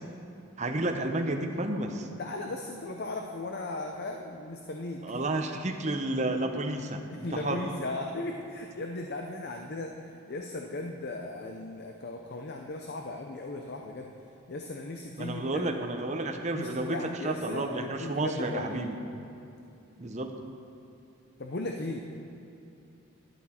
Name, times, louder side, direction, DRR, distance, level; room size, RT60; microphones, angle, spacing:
voice 1, 0.6-2.1 5.0-7.6 15.2-19.0 20.0-20.3, right 2 dB, 30° right, 4 dB, 0.8 m, -31 dB
voice 2, 2.2-5.2 7.1-9.9 10.3-14.1 14.5-15.7 16.5-18.9 21.4-22.0, left 2 dB, 45° left, 2 dB, 0.6 m, -37 dB
12.0 x 11.0 x 4.4 m, 2.7 s
head